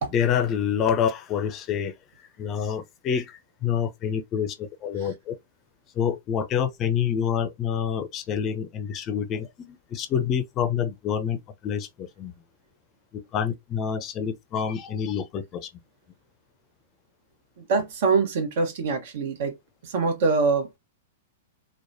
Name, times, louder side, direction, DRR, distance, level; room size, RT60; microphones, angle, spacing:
voice 1, 0.1-1.9 2.4-5.4 6.0-12.3 13.1-15.7, left 8 dB, 35° left, 0.5 m, -27 dB
voice 2, 17.7-19.6 19.8-20.8, right 4 dB, 60° right, 0.9 m, -24 dB
3.1 x 2.1 x 2.6 m
hypercardioid pair, 110°, 0 cm